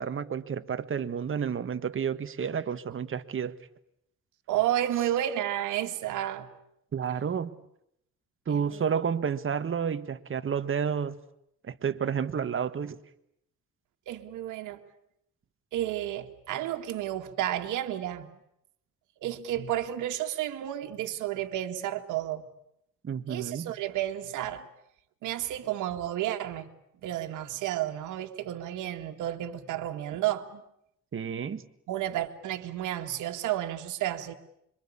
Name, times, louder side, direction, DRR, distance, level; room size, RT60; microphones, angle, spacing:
voice 1, 0.0-3.5 6.9-7.5 8.5-11.2 11.6-13.0 23.0-23.7 31.1-31.6, right 7 dB, 45° right, 1.6 m, -30 dB
voice 2, 4.5-6.5 8.5-8.9 14.1-14.8 15.7-18.4 19.2-22.5 23.3-24.7 25.2-26.7 27.0-30.6 31.9-34.3, right 12 dB, 90° right, 2.0 m, -31 dB
26.0 x 24.0 x 8.7 m
cardioid pair, 90°, 30 cm